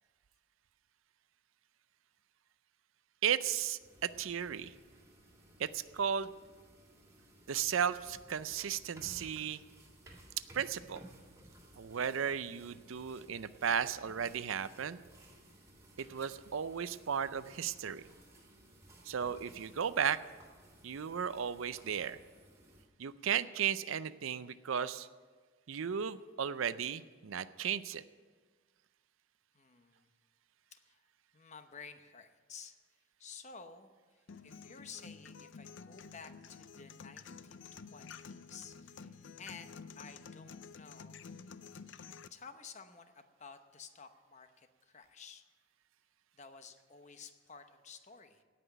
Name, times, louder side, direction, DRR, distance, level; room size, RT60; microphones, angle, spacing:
voice 1, 3.2-4.7 5.6-6.3 7.5-9.6 10.5-11.0 11.8-15.0 16.0-18.0 19.1-20.2 20.8-22.2 23.0-25.1 25.7-28.0, right 8 dB, 75° right, 15 dB, 0.5 m, -35 dB
sound 1, 3.8-22.8, right 1 dB, 15° right, 2.1 m, -58 dB
voice 2, 29.5-30.1 30.7-31.0 31.3-32.7 33.2-41.2 42.3-45.4 46.3-48.4, left 5 dB, 35° left, 8 dB, 0.8 m, -53 dB
sound 2, 34.3-42.3, left 5 dB, 55° left, 0.4 m, -51 dB
17.0 x 6.0 x 9.2 m, 1.5 s
head